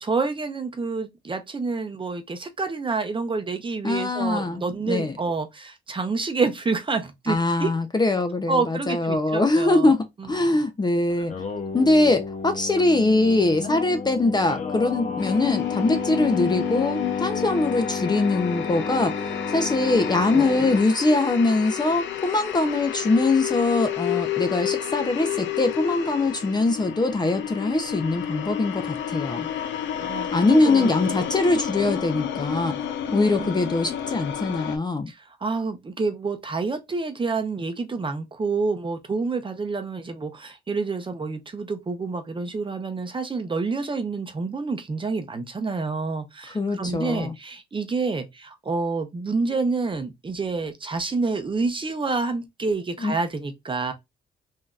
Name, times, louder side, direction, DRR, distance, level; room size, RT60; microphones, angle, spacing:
voice 1, 0.1-7.7 8.5-9.9 10.2-10.6 19.9-20.0 20.3-20.6 30.0-30.9 33.1-33.5 35.1-53.9, right 4 dB, 25° right, 0.7 m, -28 dB
voice 2, 3.8-5.1 7.3-11.3 11.7-29.5 30.3-32.7 33.1-35.1 46.5-47.3 53.0-53.1, left 2 dB, 20° left, 0.6 m, -22 dB
Singing, 11.1-20.9, left 5 dB, 40° left, 1.0 m, -31 dB
sound 1, 15.2-34.8, left 10 dB, 70° left, 0.7 m, -31 dB
3.6 x 2.7 x 2.3 m
cardioid pair, 90°, 20 cm